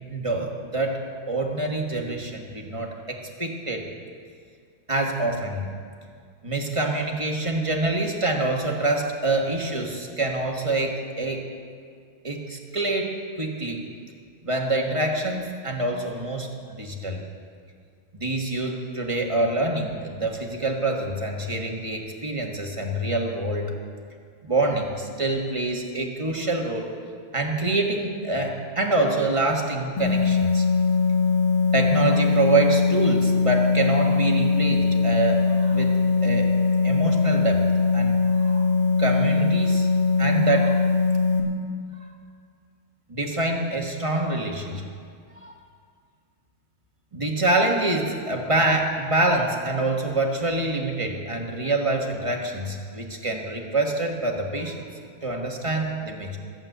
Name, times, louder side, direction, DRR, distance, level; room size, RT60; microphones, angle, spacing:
voice 1, 0.1-1.0 1.3-3.9 4.9-5.7 6.4-11.4 12.2-13.8 14.4-17.2 18.1-23.7 24.4-26.9 27.3-30.6 31.7-36.5 36.8-37.7 37.9-38.6 39.0-39.9 40.2-40.8 42.0-42.1 43.1-44.8 45.4-45.5 47.1-54.9 55.2-56.4, right 2 dB, 20° right, 0 dB, 1.2 m, -26 dB
sound 1, 30.0-41.4, left 4 dB, 80° left, 2.5 m, -21 dB
14.0 x 8.9 x 8.0 m, 2.2 s
omnidirectional pair, 2.3 m